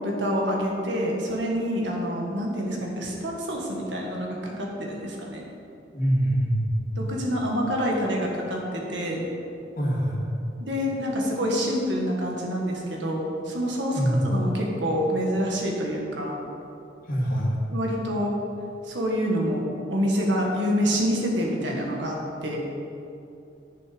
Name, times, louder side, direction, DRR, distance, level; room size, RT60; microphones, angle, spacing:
voice 1, 0.0-5.4 6.9-9.2 10.6-16.4 17.7-18.3 18.8-19.6 19.9-22.2 22.4-22.6, equal, 70° right, -1 dB, 1.8 m, -27 dB
voice 2, 5.9-6.7 9.8-10.2 14.0-14.2 17.1-17.5, equal, 50° left, -5 dB, 2.4 m, -24 dB
10.5 x 6.7 x 5.3 m, 2.7 s
head